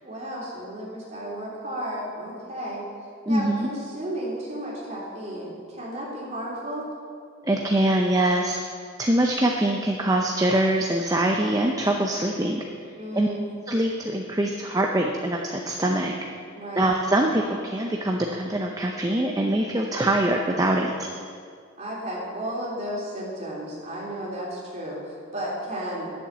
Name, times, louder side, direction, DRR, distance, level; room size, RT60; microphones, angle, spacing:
voice 1, 0.0-2.9 3.3-6.9 12.9-13.4 16.5-16.8 21.8-26.1, equal, 35° right, -6 dB, 3.3 m, -33 dB
voice 2, 3.3-3.7 7.4-8.6 9.0-12.6 13.1-13.3 13.7-16.1 16.8-21.1, right 1 dB, 20° right, 1 dB, 0.6 m, -23 dB
11.0 x 7.2 x 7.3 m, 2.2 s
head